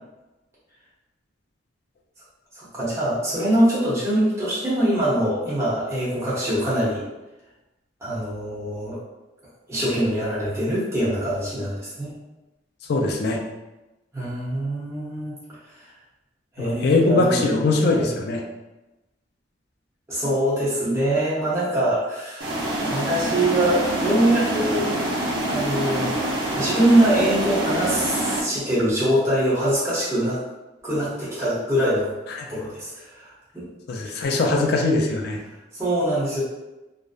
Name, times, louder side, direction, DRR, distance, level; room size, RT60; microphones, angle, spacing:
voice 1, 2.5-7.0 8.0-9.0 9.7-12.1 14.1-15.3 15.8-15.9 16.6-17.5 17.8-18.1 20.1-22.5 22.8-24.9 25.4-26.2 26.5-30.4 30.8-32.1 32.5-33.7 35.7-36.4, right 1 dB, 15° right, -10 dB, 0.8 m, -23 dB
voice 2, 12.9-13.4 16.6-18.4 32.4-32.5 33.9-35.4, left 3 dB, 60° left, 2 dB, 0.4 m, -21 dB
sound 1, 22.4-28.4, right 1 dB, 70° right, 0.6 m, -26 dB
2.6 x 2.0 x 2.3 m, 1.1 s
head